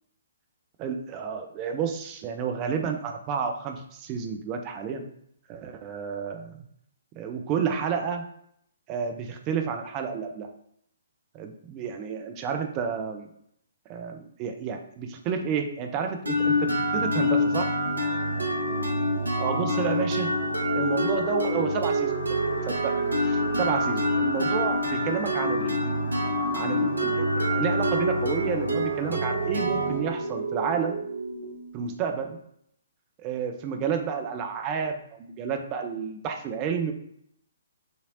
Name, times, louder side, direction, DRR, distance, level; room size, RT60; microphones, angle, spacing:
voice 1, 0.8-5.1 5.5-6.6 7.2-8.2 8.9-10.5 11.3-13.3 13.9-17.7 19.4-20.3 20.7-22.1 22.7-22.9 23.2-25.9 26.5-31.0 31.7-32.4 33.2-36.9, right 6 dB, 25° right, 4 dB, 0.5 m, -30 dB
sound 1, 16.3-31.9, equal, 70° right, 0.9 m, -26 dB
5.2 x 3.2 x 2.5 m, 0.69 s
figure-of-eight pair, 130°, 0 cm